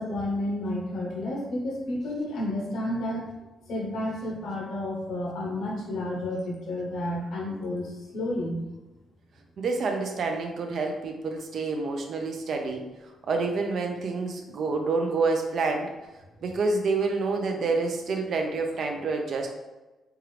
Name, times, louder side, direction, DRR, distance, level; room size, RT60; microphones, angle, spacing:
voice 1, 0.0-3.3 3.7-8.6, left 1 dB, 70° left, -2 dB, 0.9 m, -31 dB
voice 2, 9.6-15.9 16.4-19.5, right 3 dB, 50° right, 3 dB, 0.5 m, -28 dB
4.5 x 2.5 x 3.2 m, 1.1 s
cardioid pair, 175°, 0 cm